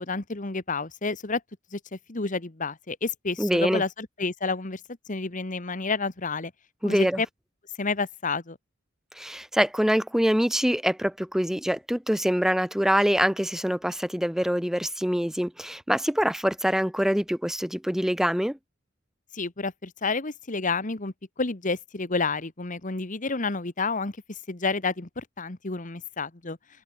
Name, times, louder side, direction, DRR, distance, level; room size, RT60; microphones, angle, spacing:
voice 1, 0.0-1.4 1.7-4.8 5.1-6.5 6.8-7.3 7.8-8.6 19.3-26.6, left 3 dB, 40° left, 1.5 m, -30 dB
voice 2, 3.4-3.8 6.8-7.2 9.2-18.6, equal, ahead, 0.7 m, -25 dB
open air
head